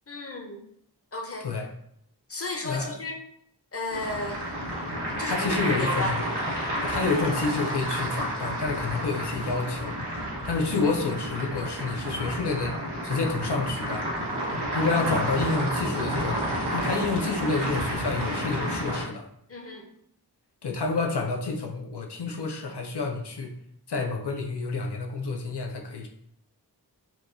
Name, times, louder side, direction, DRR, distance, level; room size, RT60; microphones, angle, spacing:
voice 1, 0.1-0.6 1.1-1.5 2.3-3.2 3.7-4.5 5.2-6.2 19.5-19.9, left 2 dB, 35° left, 3 dB, 0.6 m, -33 dB
voice 2, 2.6-3.0 5.2-6.2 6.8-10.0 10.4-12.8 13.0-14.1 14.7-16.4 16.7-19.3 20.6-23.5 23.9-26.1, left 3 dB, 90° left, 3 dB, 0.6 m, -29 dB
sound 1, 3.9-19.0, equal, 90° right, 1.0 m, -30 dB
4.4 x 2.2 x 2.6 m, 0.71 s
wide cardioid pair, 45°, 39 cm